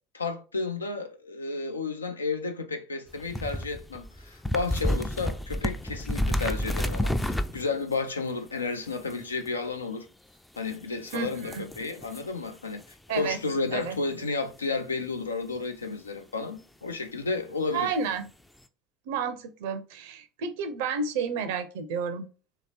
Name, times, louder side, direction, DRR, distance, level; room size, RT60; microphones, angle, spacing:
voice 1, 0.1-10.1 10.6-12.8 13.1-18.0, left 4 dB, 80° left, 0.5 m, -32 dB
sound 1, 3.1-7.9 8.9-9.5 10.7-10.8 11.1-12.3 12.8-12.9 15.6-15.7, left 1 dB, 5° left, 0.4 m, -30 dB
voice 2, 11.1-11.7 13.1-13.4 13.7-14.0 17.7-18.3 19.1-22.3, right 5 dB, 60° right, 0.5 m, -31 dB
3.1 x 2.9 x 4.1 m
figure-of-eight pair, 70°, 0 cm